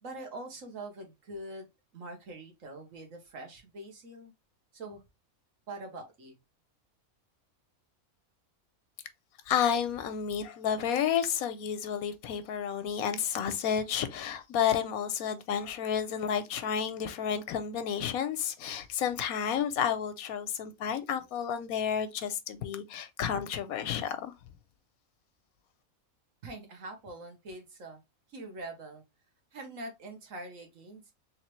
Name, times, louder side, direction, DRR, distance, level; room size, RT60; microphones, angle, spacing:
voice 1, 0.0-1.7 1.9-4.3 4.7-5.0 5.7-6.3 26.4-28.0 28.3-29.0 29.5-31.1, right 2 dB, 65° right, 1.5 m, -44 dB
voice 2, 9.5-24.3, left 8 dB, 85° left, 1.1 m, -31 dB
3.6 x 3.2 x 3.1 m
omnidirectional pair, 1.5 m